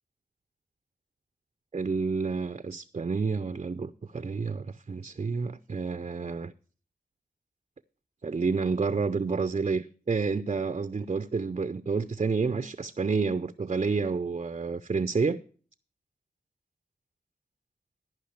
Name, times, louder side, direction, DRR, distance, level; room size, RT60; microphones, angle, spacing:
voice 1, 1.7-6.5 8.2-15.4, right 4 dB, 40° right, 0.5 m, -29 dB
13.5 x 5.3 x 7.2 m
cardioid pair, 45°, 17 cm